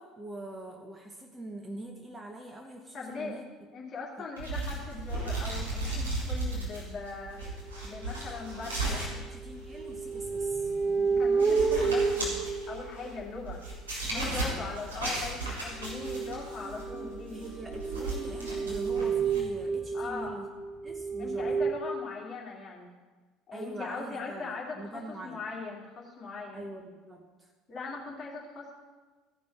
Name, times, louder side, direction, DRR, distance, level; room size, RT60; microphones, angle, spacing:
voice 1, 0.0-3.4 4.2-4.3 8.9-10.7 14.1-14.7 17.3-20.5 20.8-21.5 23.5-25.4 26.5-27.5, right 1 dB, 15° right, 2 dB, 1.1 m, -43 dB
voice 2, 2.9-3.4 3.7-9.1 11.2-13.6 14.1-17.4 19.9-20.5 21.2-22.9 23.5-26.7 27.7-28.7, left 4 dB, 35° left, -3 dB, 2.7 m, -40 dB
sound 1, 4.4-19.4, right 2 dB, 75° right, 3.1 m, -36 dB
sound 2, 7.1-7.2 8.0-8.2 9.1-13.5 15.7-21.7, right 5 dB, 35° right, 1.6 m, -31 dB
15.5 x 5.3 x 5.7 m, 1.3 s
figure-of-eight pair, 60°, 0 cm